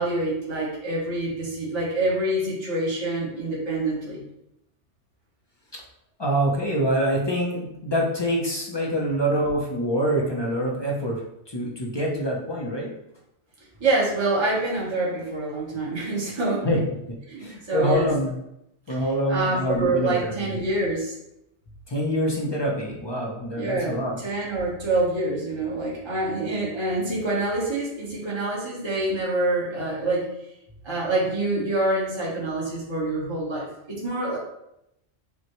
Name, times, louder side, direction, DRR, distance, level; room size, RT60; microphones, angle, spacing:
voice 1, 0.0-4.2 13.8-16.7 17.3-18.1 18.9-19.0 19.3-21.2 23.6-30.3 30.8-34.4, right 2 dB, 25° right, -6 dB, 1.1 m, -26 dB
voice 2, 6.2-11.2 11.5-12.9 16.6-16.8 17.4-18.3 18.9-20.5 21.9-24.2, equal, 30° left, -2 dB, 0.5 m, -25 dB
5.6 x 2.2 x 3.0 m, 0.83 s
omnidirectional pair, 1.2 m